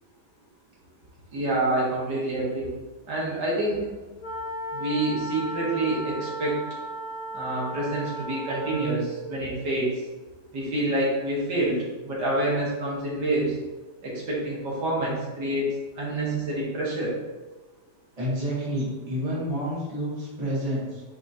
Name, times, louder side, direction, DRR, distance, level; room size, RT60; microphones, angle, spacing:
voice 1, 1.3-2.7 3.1-3.8 4.7-6.6 7.3-9.9 10.5-11.8 12.0-13.6 14.0-17.1, right 1 dB, 75° right, -6 dB, 2.2 m, -27 dB
sound 1, 4.2-9.1, right 1 dB, 65° left, 2.6 m, -34 dB
voice 2, 18.2-21.0, equal, 20° right, -7 dB, 1.9 m, -29 dB
9.2 x 3.7 x 2.8 m, 1.2 s
omnidirectional pair, 1.9 m